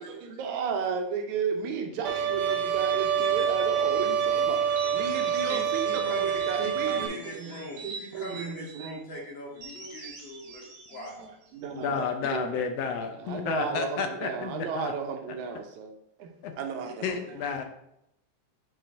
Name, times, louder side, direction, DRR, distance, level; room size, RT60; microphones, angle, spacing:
voice 1, 0.0-9.0 11.2-12.6 13.0-15.9 16.2-16.3 16.6-17.2, right 6 dB, 85° right, 4 dB, 2.2 m, -34 dB
Bowed string instrument, 2.0-7.1, right 8 dB, 65° right, 1.6 m, -26 dB
sound 1, 4.6-6.6 7.1-9.0 9.5-12.1, right 4 dB, 45° right, 1.4 m, -45 dB
voice 2, 5.5-11.1, left 1 dB, 50° left, -3 dB, 1.8 m, -41 dB
voice 3, 11.7-14.9 16.4-16.5 17.0-17.6, left 6 dB, 75° left, 6 dB, 1.6 m, -31 dB
10.0 x 4.2 x 2.6 m, 0.80 s
omnidirectional pair, 3.3 m